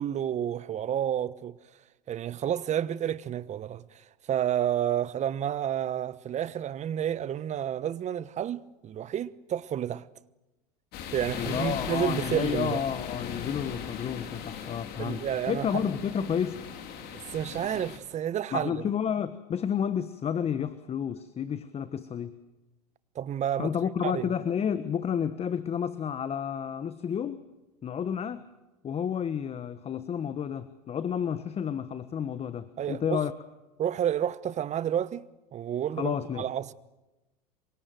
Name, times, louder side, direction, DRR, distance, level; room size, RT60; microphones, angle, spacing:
voice 1, 0.0-1.6 2.1-10.0 11.1-12.8 15.0-15.8 17.1-18.8 23.1-23.7 24.0-24.3 32.8-33.2 33.8-36.7, right 10 dB, 35° right, 1.2 m, -30 dB
sound 1, 10.9-18.0, left 7 dB, 50° left, 4.1 m, -38 dB
voice 2, 11.3-15.2 15.5-16.6 18.5-22.4 23.6-27.4 27.8-28.5 28.8-33.3 36.0-36.5, left 8 dB, 30° left, 1.3 m, -31 dB
27.5 x 24.0 x 7.7 m
hypercardioid pair, 90°, 20 cm